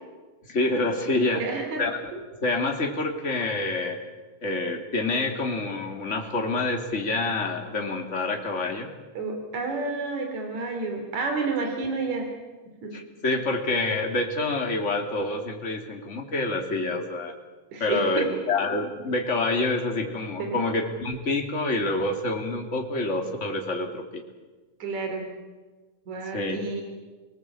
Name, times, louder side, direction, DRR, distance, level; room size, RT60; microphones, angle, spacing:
voice 1, 0.5-1.4 1.8-4.0 4.4-8.9 12.9-17.3 17.8-24.2 26.3-26.6, left 2 dB, 25° left, 2 dB, 3.1 m, -27 dB
voice 2, 1.3-1.8 2.1-2.2 9.2-12.3 12.8-13.0 17.7-18.4 20.4-20.6 24.8-25.3 26.1-26.8, right 4 dB, 70° right, 3 dB, 4.4 m, -30 dB
28.5 x 19.5 x 8.6 m, 1.3 s
omnidirectional pair, 3.4 m